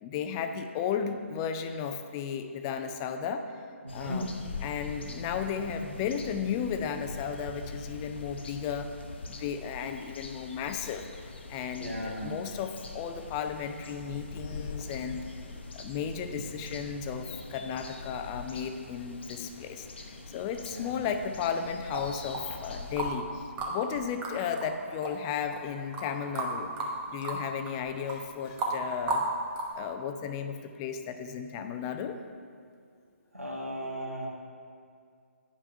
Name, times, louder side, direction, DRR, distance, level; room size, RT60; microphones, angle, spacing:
voice 1, 0.0-3.4 3.9-4.3 4.6-8.9 9.3-15.2 15.7-26.7 27.1-29.3 29.7-32.2, left 7 dB, 20° left, 7 dB, 0.4 m, -34 dB
voice 2, 3.8-4.3 11.7-12.4 20.7-21.1 33.3-34.3, equal, 85° right, -2 dB, 1.9 m, -36 dB
sound 1, 3.9-23.1, left 3 dB, 50° left, 0.9 m, -43 dB
sound 2, 21.9-23.2 23.6-29.9, right 2 dB, 15° right, 1.0 m, -34 dB
9.5 x 5.5 x 5.6 m, 2.2 s
figure-of-eight pair, 135°, 8 cm